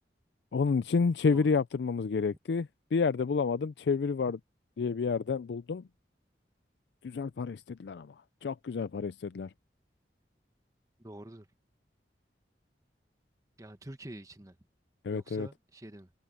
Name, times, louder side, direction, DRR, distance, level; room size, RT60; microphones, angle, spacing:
voice 1, 0.5-4.4 4.8-5.8 7.0-8.1 8.4-9.5 15.0-15.5, left 5 dB, 75° left, 0.4 m, -29 dB
voice 2, 11.0-11.5 13.6-14.6 15.1-16.1, right 1 dB, 20° right, 1.2 m, -46 dB
head